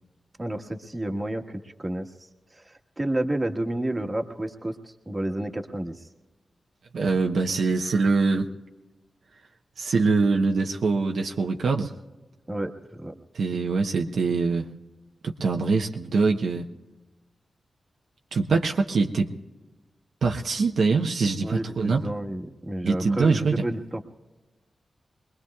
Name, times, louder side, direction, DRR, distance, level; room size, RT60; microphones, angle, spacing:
voice 1, 0.4-2.1 2.5-6.1 12.5-12.7 13.0-13.1 21.4-24.0, right 1 dB, 25° right, 3 dB, 1.4 m, -30 dB
voice 2, 6.9-8.5 9.8-11.9 13.3-14.6 15.2-16.6 18.3-19.3 20.2-22.1 22.8-23.6, right 4 dB, 80° right, 2 dB, 0.9 m, -23 dB
24.5 x 21.0 x 2.4 m, 1.2 s
cardioid pair, 75°, 0 cm